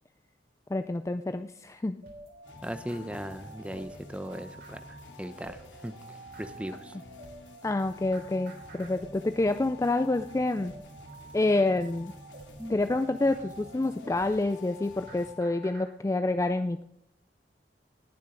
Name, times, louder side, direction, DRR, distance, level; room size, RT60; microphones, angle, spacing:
voice 1, 0.7-2.0 7.6-10.7 11.3-12.1 12.7-16.8, left 2 dB, 15° left, 10 dB, 0.3 m, -28 dB
sound 1, 2.0-15.9, equal, 60° right, 3.2 m, -49 dB
sound 2, 2.4-15.3, left 1 dB, 90° left, 2.8 m, -50 dB
voice 2, 2.6-7.0 12.6-12.7, equal, 5° right, 10 dB, 0.8 m, -38 dB
19.5 x 7.4 x 3.8 m, 0.76 s
head